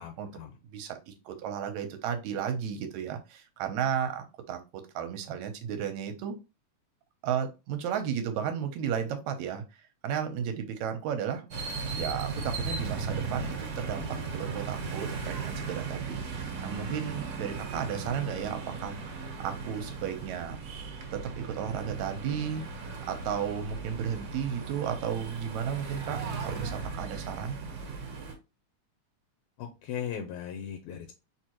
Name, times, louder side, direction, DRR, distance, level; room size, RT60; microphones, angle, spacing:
voice 1, 0.0-0.6 29.6-31.1, left 8 dB, 80° left, 4 dB, 2.0 m, -38 dB
voice 2, 0.7-6.4 7.2-11.5 11.9-14.1 14.3-19.0 19.4-20.6 21.1-22.6 23.1-27.6, right 8 dB, 75° right, 7 dB, 2.0 m, -34 dB
sound 1, 11.5-28.3, right 4 dB, 60° right, 1.7 m, -37 dB
4.6 x 3.6 x 2.9 m, 0.28 s
omnidirectional pair, 3.4 m